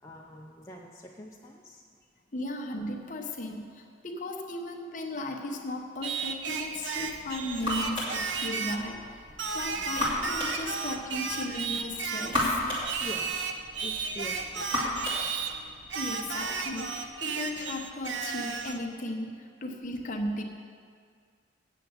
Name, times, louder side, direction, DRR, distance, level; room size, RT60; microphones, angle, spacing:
voice 1, 0.0-1.8 9.7-10.1 13.0-15.0, left 1 dB, 15° left, -2 dB, 0.5 m, -45 dB
voice 2, 2.3-9.2 9.5-12.6 15.9-20.4, left 1 dB, 40° left, 2 dB, 1.0 m, -36 dB
Singing, 6.0-8.9 9.4-12.4 12.8-15.6 15.9-18.8, right 5 dB, 65° right, 0.6 m, -34 dB
sound 1, 6.9-17.1, left 1 dB, 25° right, 2.8 m, -36 dB
8.3 x 7.0 x 8.0 m, 2.1 s
head